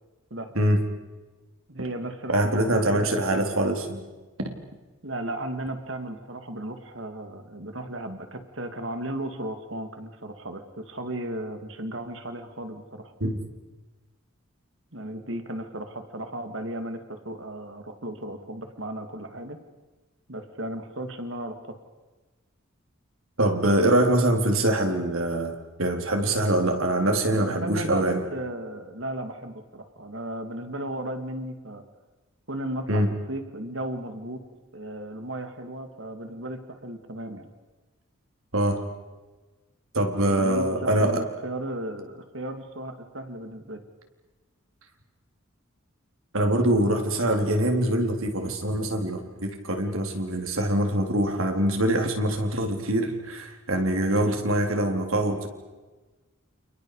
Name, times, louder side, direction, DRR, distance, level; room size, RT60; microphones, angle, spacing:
voice 1, 1.7-3.3 5.0-13.1 14.9-19.6 20.3-21.8 27.3-31.8 32.5-34.4 34.7-37.5 40.3-43.8, right 1 dB, 65° right, 7 dB, 2.6 m, -35 dB
voice 2, 2.3-4.0 13.2-13.4 23.4-28.2 32.9-33.1 38.5-38.8 39.9-41.2 46.3-55.5, right 1 dB, 80° right, 4 dB, 3.9 m, -24 dB
30.0 x 29.5 x 5.1 m, 1.2 s
head